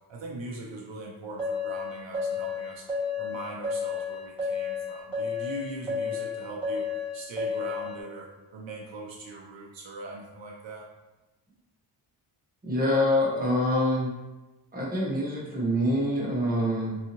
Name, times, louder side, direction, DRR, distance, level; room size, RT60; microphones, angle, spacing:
voice 1, 0.1-2.9 3.2-6.9 7.1-10.9, right 2 dB, 70° right, -2 dB, 0.7 m, -40 dB
sound 1, 1.4-7.9, left 5 dB, 5° left, 1.3 m, -31 dB
voice 2, 12.6-14.1 14.7-17.0, left 1 dB, 20° right, -5 dB, 1.0 m, -25 dB
3.9 x 2.7 x 2.9 m, 1.1 s
wide cardioid pair, 125°, 46 cm